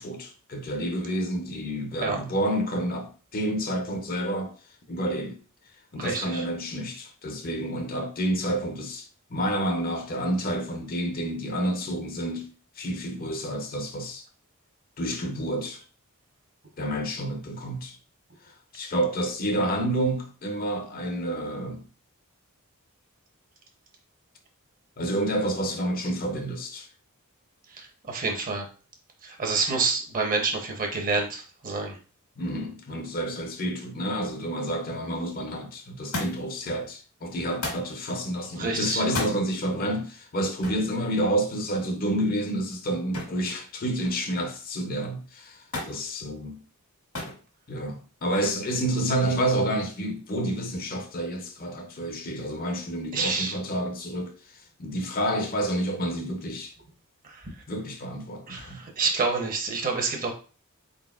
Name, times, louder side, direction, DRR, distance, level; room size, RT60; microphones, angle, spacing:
voice 1, 0.0-4.5 4.9-5.4 5.9-12.5 12.8-14.2 15.0-15.8 16.8-18.0 18.4-21.9 25.0-26.9 32.4-46.6 47.7-56.7 57.7-58.8, right 1 dB, 40° left, 0.6 m, -29 dB
voice 2, 6.0-6.4 27.8-28.7 29.2-32.0 38.6-39.0 53.1-53.5 57.3-57.5 58.5-60.3, right 4 dB, 40° right, 0.9 m, -28 dB
Thump thud, 36.1-36.6 37.6-37.9 39.0-39.4 40.6-40.9 43.1-43.5 43.8-44.4 45.7-46.0 47.1-47.4 48.4-48.8 49.8-49.9, left 2 dB, 85° left, 1.8 m, -33 dB
4.0 x 3.9 x 2.4 m
head